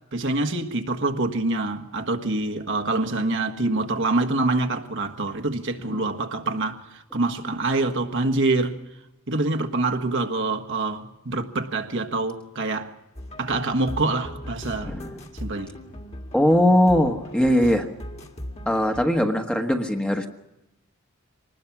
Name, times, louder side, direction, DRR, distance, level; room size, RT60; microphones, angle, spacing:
voice 1, 0.1-8.8 9.3-12.9 13.4-15.0 15.4-15.8, right 2 dB, 60° right, 1.5 m, -25 dB
sound 1, 13.2-19.1, equal, 30° left, 2.0 m, -38 dB
voice 2, 14.8-15.1 16.3-17.9 18.7-20.3, equal, 5° left, 1.3 m, -20 dB
24.5 x 20.0 x 6.0 m
head